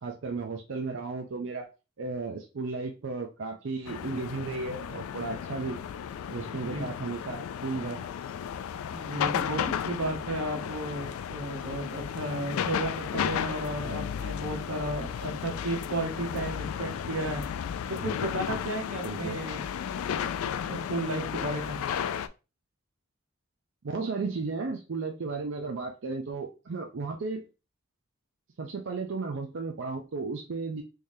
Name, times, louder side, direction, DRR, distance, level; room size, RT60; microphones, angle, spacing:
voice 1, 0.0-1.7 2.0-5.8 6.3-8.0 19.0-19.4 23.8-27.4 28.6-30.8, right 4 dB, 60° right, 4 dB, 0.5 m, -34 dB
sound 1, 3.9-22.3, left 8 dB, 85° left, 0.3 m, -34 dB
voice 2, 6.5-6.9 8.9-17.4 17.9-19.6 20.0-21.8, right 1 dB, 85° right, 2 dB, 1.1 m, -34 dB
3.7 x 3.2 x 2.7 m, 0.30 s
head